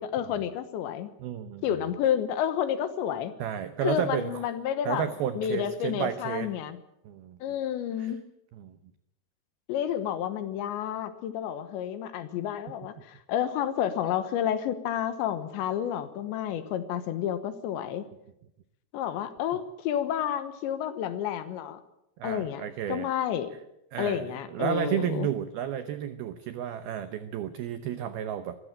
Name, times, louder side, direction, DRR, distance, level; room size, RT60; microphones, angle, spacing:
voice 1, 0.0-1.1 1.6-3.3 3.8-5.1 5.4-6.8 7.4-8.2 9.7-18.0 18.9-21.8 22.2-22.6 22.9-23.5 24.0-25.3, left 10 dB, 75° left, 12 dB, 3.2 m, -30 dB
voice 2, 1.2-1.6 3.4-4.4 4.9-6.5 7.0-7.4 8.0-8.2 8.5-8.8 22.2-23.1 23.9-28.6, right 10 dB, 90° right, 11 dB, 2.1 m, -32 dB
24.5 x 14.5 x 8.9 m, 0.80 s
omnidirectional pair, 5.8 m